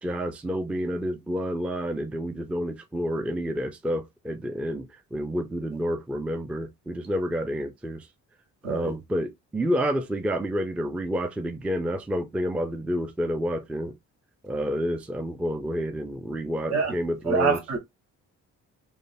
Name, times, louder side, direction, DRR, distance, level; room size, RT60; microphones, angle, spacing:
voice 1, 0.0-8.1 8.6-14.0 14.4-17.6, equal, 5° right, 0.4 m, -29 dB
voice 2, 17.3-17.8, right 6 dB, 60° right, 1.0 m, -25 dB
3.3 x 2.2 x 2.6 m
cardioid pair, 90°, 30 cm